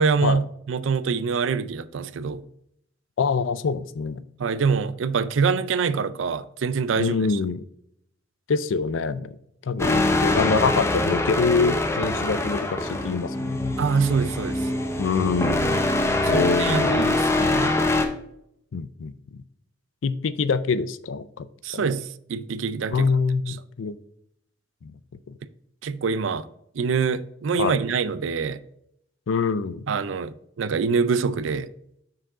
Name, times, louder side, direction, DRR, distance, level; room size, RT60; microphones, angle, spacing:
voice 1, 0.0-2.4 4.4-7.4 13.8-14.7 16.2-17.8 21.6-23.1 23.5-23.6 25.8-26.5 26.7-28.6 29.9-31.7, right 5 dB, 85° right, 0.4 m, -25 dB
voice 2, 3.2-4.2 7.0-7.6 8.5-9.4 9.6-13.8 15.0-15.9 16.3-17.0 17.3-17.5 18.7-19.4 20.0-21.5 21.7-21.9 22.9-24.0 24.8-24.9 25.3-25.4 27.6-27.8 29.3-29.8, left 5 dB, 90° left, 0.4 m, -25 dB
sound 1, 9.8-18.0, left 2 dB, 15° left, 0.6 m, -24 dB
6.2 x 4.7 x 4.9 m
head